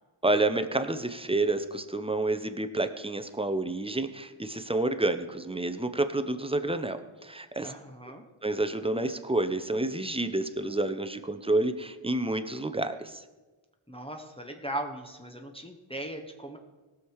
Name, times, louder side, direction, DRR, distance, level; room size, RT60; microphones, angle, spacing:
voice 1, 0.2-7.7 8.4-13.2, right 2 dB, 10° right, 9 dB, 0.7 m, -29 dB
voice 2, 7.6-8.2 13.9-16.6, right 1 dB, 10° left, 3 dB, 1.1 m, -38 dB
18.5 x 6.6 x 4.8 m, 1.2 s
wide cardioid pair, 50°, 50 cm